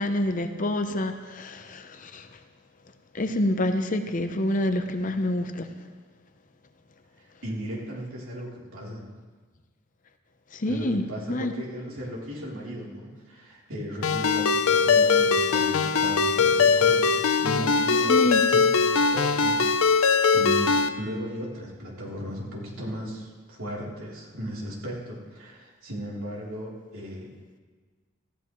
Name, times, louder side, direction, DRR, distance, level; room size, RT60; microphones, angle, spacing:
voice 1, 0.0-2.3 3.1-5.7 10.5-11.0 11.3-11.5 18.1-18.4, left 1 dB, 35° left, 7 dB, 0.7 m, -27 dB
voice 2, 7.2-9.0 10.7-18.2 18.5-27.3, equal, 75° right, -4 dB, 3.4 m, -36 dB
Ringtone, 14.0-20.9, left 5 dB, 80° left, 0.6 m, -21 dB
18.5 x 15.0 x 3.1 m, 1.5 s
head